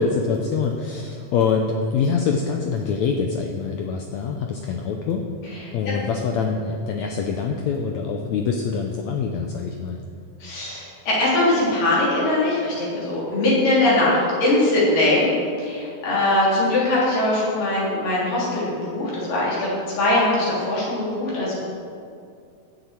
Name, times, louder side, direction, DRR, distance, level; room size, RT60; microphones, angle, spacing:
voice 1, 0.0-5.3 5.7-10.0, left 5 dB, 80° left, 3 dB, 1.6 m, -24 dB
voice 2, 10.4-15.3 15.6-19.7 20.0-21.6, left 2 dB, 65° left, -7 dB, 5.2 m, -21 dB
15.0 x 10.5 x 4.5 m, 2.4 s
omnidirectional pair, 4.1 m